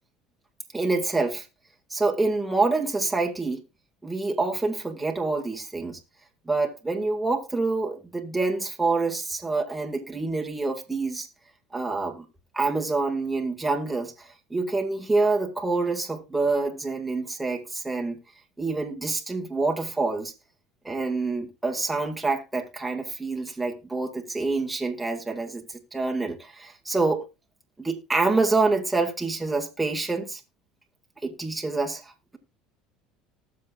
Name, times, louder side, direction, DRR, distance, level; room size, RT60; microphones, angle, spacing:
voice 1, 0.7-1.5 1.9-3.6 4.0-6.0 6.5-11.3 11.7-12.3 12.5-18.2 18.6-20.3 20.8-27.2 27.8-30.4 31.2-32.4, right 3 dB, 10° right, 1.9 m, -27 dB
19.5 x 6.8 x 2.4 m
hypercardioid pair, 85°, 0 cm